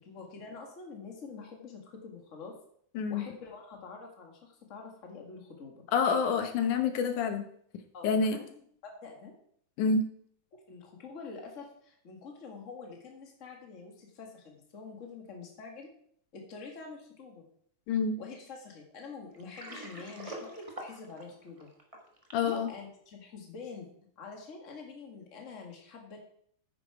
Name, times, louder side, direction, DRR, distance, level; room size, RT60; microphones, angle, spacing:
voice 1, 0.0-2.5 3.1-5.8 7.9-9.3 10.5-15.9 16.3-17.5 18.2-21.7 22.4-23.9 24.2-26.2, left 4 dB, 30° left, 1 dB, 1.8 m, -46 dB
voice 2, 5.9-7.4 8.0-8.4 9.8-10.0 17.9-18.2 22.3-22.7, left 5 dB, 85° left, 6 dB, 2.6 m, -27 dB
Water, 19.3-22.5, right 1 dB, 25° right, 0.7 m, -45 dB
9.5 x 8.5 x 4.8 m, 0.64 s
omnidirectional pair, 3.5 m